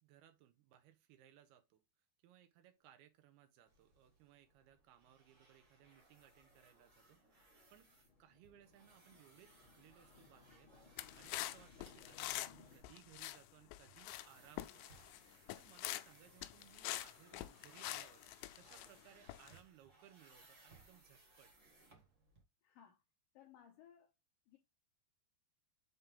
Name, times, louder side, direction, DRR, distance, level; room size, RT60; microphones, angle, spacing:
voice 1, 0.0-1.8 2.2-7.9 8.2-10.7 11.2-18.2 18.5-21.5, right 11 dB, 75° right, 2.6 m, -65 dB
sound 1, 3.6-22.4, right 2 dB, 55° right, 0.8 m, -67 dB
sound 2, 5.9-12.8, left 5 dB, 45° left, 1.9 m, -65 dB
sound 3, 11.0-12.6 12.8-13.4 13.7-14.3 14.6-15.2 15.5-16.1 16.4-18.9 19.3-19.6, left 15 dB, 90° left, 2.8 m, -45 dB
voice 2, 22.6-23.0 23.3-24.1 24.5-24.6, left 9 dB, 70° left, 2.3 m, -62 dB
8.0 x 3.7 x 3.5 m
omnidirectional pair, 4.9 m